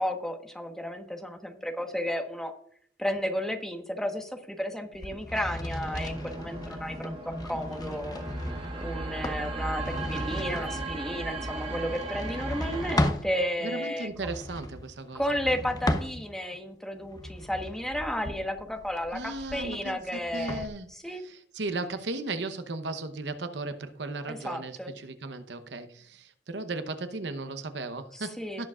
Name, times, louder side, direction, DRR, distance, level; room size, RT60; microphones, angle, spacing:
voice 1, 0.0-2.5 3.0-8.2 8.8-14.1 15.1-20.6 20.9-21.2 24.3-24.9 28.1-28.6, equal, 5° left, 3 dB, 1.2 m, -33 dB
sound 1, 4.9-13.3 14.1-16.6 17.0-20.7, left 1 dB, 20° left, 0.8 m, -35 dB
sound 2, 5.8-13.1, right 2 dB, 30° right, 1.4 m, -36 dB
voice 2, 13.6-15.2 19.1-28.7, right 3 dB, 70° right, 10 dB, 0.9 m, -36 dB
18.0 x 7.2 x 2.4 m, 0.64 s
head